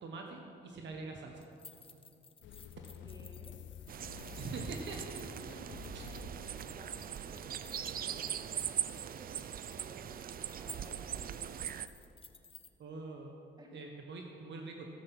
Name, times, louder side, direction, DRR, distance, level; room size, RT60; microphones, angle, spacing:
voice 1, 0.0-1.5 4.4-5.4 5.9-6.0 12.8-13.4 13.7-14.9, right 3 dB, 65° right, 2 dB, 1.3 m, -44 dB
sound 1, 1.4-12.7, left 5 dB, 25° left, 0.7 m, -58 dB
sound 2, 2.4-7.9, left 10 dB, 70° left, 0.5 m, -52 dB
voice 2, 3.0-3.6 5.4-11.6 13.6-13.7, right 1 dB, 20° right, 1 dB, 2.1 m, -55 dB
sound 3, 3.9-11.9, right 9 dB, 45° right, 0.4 m, -41 dB
14.0 x 7.8 x 6.0 m, 2.6 s
cardioid pair, 90°, 20 cm